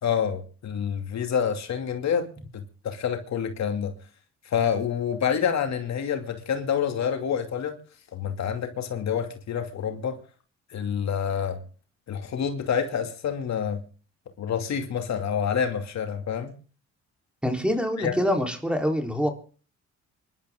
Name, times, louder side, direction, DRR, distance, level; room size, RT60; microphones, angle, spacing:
voice 1, 0.0-2.3 2.5-3.9 4.4-7.8 8.1-10.2 10.7-11.6 12.1-13.8 14.4-16.5 18.0-18.1, left 7 dB, 65° left, 2.7 m, -27 dB
voice 2, 17.4-19.3, equal, 5° right, 3.9 m, -25 dB
25.5 x 12.0 x 3.8 m
cardioid pair, 90°, 30 cm